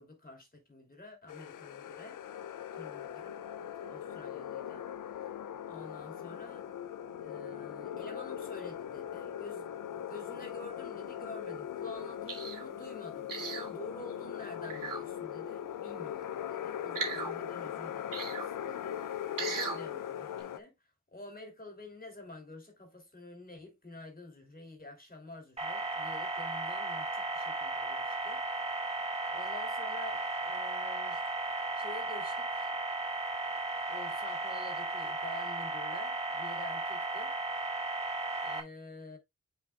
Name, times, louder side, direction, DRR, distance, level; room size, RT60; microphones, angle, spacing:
voice 1, 0.0-2.2 2.7-3.4 3.9-4.9 5.2-5.3 5.7-6.7 7.2-20.7 21.1-28.4 28.9-31.2 31.7-32.7 33.9-37.3 38.4-39.2, left 2 dB, 25° left, 3.4 m, -48 dB
sound 1, 1.3-20.6, left 10 dB, 75° left, 0.6 m, -40 dB
sound 2, 12.3-12.6 13.3-13.7 14.6-15.0 16.9-17.3 18.1-18.5 19.4-19.8 20.4-20.5, right 4 dB, 85° right, 2.2 m, -37 dB
sound 3, 25.6-38.6, right 2 dB, 20° right, 2.2 m, -35 dB
8.6 x 5.0 x 2.4 m
wide cardioid pair, 95°, 32 cm